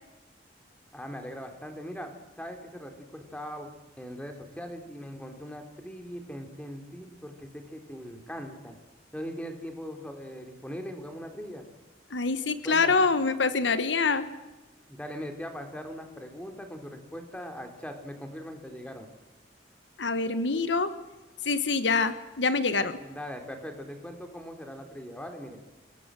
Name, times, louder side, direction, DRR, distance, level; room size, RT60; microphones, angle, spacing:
voice 1, 0.9-3.7 4.0-8.8 9.1-11.7 12.6-13.0 14.9-19.1 23.0-25.6, equal, 5° left, 4 dB, 3.5 m, -40 dB
voice 2, 12.1-14.3 20.0-20.9 21.4-23.0, left 4 dB, 80° left, 11 dB, 1.4 m, -25 dB
29.5 x 19.5 x 7.7 m, 1.2 s
head